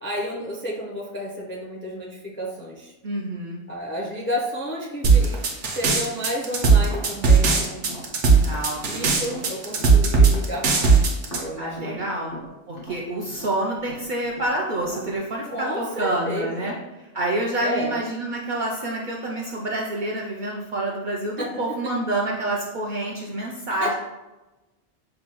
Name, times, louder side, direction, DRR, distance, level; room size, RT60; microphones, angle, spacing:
voice 1, 0.0-2.9 3.7-7.9 8.8-12.2 15.5-16.8 17.6-18.0 21.4-21.9 23.8-23.9, equal, 15° left, -3 dB, 0.4 m, -31 dB
voice 2, 3.0-3.6 8.4-9.2 11.6-12.3 12.7-16.7 17.1-23.9, right 1 dB, 60° right, -2 dB, 0.5 m, -28 dB
sound 1, 5.0-11.4, right 5 dB, 75° right, 1.0 m, -17 dB
Tap, 6.8-10.4 10.7-15.1, equal, 75° left, 1.6 m, -40 dB
6.3 x 2.2 x 2.9 m, 1.1 s
omnidirectional pair, 1.2 m